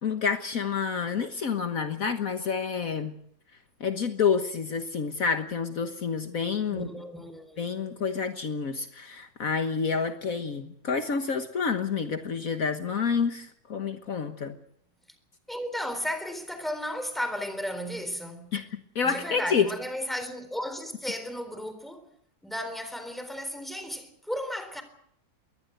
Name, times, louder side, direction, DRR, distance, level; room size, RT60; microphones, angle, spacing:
voice 1, 0.0-3.2 3.8-6.9 7.6-14.6 18.5-19.7, left 6 dB, 60° left, 1.7 m, -28 dB
voice 2, 6.7-7.6 15.5-18.5 19.0-22.0 22.4-24.8, equal, ahead, 3.8 m, -34 dB
22.5 x 19.5 x 8.0 m
omnidirectional pair, 1.7 m